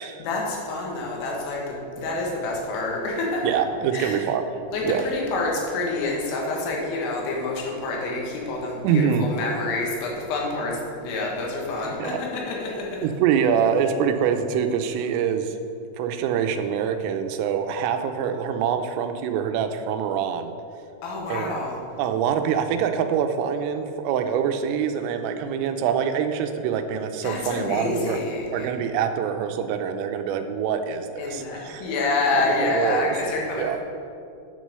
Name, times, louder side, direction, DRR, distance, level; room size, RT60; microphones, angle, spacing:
voice 1, 0.2-3.5 3.9-4.2 4.7-12.9 21.0-21.8 27.2-28.7 31.2-33.8, left 2 dB, 90° left, -2 dB, 4.2 m, -27 dB
voice 2, 3.4-4.5 4.8-5.0 8.8-9.3 12.0-12.2 13.0-15.5 16.0-20.5 21.3-21.6 22.0-28.2 28.5-31.9 32.6-33.1 33.6-33.8, right 8 dB, 90° right, 7 dB, 3.3 m, -25 dB
9.7 x 6.3 x 6.7 m, 2.5 s
omnidirectional pair, 5.7 m